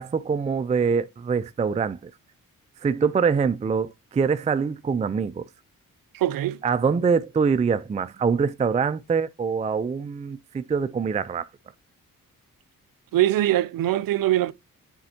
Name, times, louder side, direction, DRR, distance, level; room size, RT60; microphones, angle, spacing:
voice 1, 0.0-2.1 2.8-5.5 6.6-11.5, right 5 dB, 20° right, 0.3 m, -24 dB
voice 2, 6.1-6.6 13.1-14.5, right 14 dB, 80° right, 0.5 m, -22 dB
9.3 x 4.3 x 2.7 m
cardioid pair, 75°, 34 cm